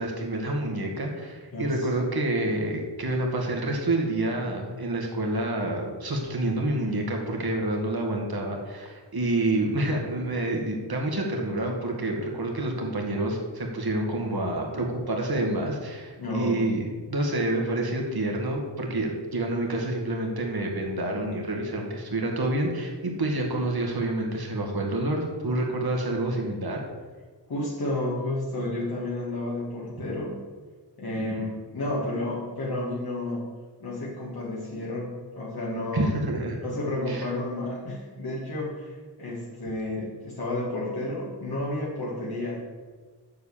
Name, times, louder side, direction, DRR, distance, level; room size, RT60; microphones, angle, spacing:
voice 1, 0.0-26.8 31.2-31.5 35.9-36.6 37.1-37.3, right 1 dB, 60° right, 1 dB, 2.2 m, -28 dB
voice 2, 1.5-1.9 16.2-16.8 27.5-30.4 31.0-33.5 33.8-36.1 36.6-42.6, left 1 dB, 60° left, -6 dB, 2.5 m, -31 dB
7.7 x 7.0 x 7.4 m, 1.5 s
wide cardioid pair, 100°, 42 cm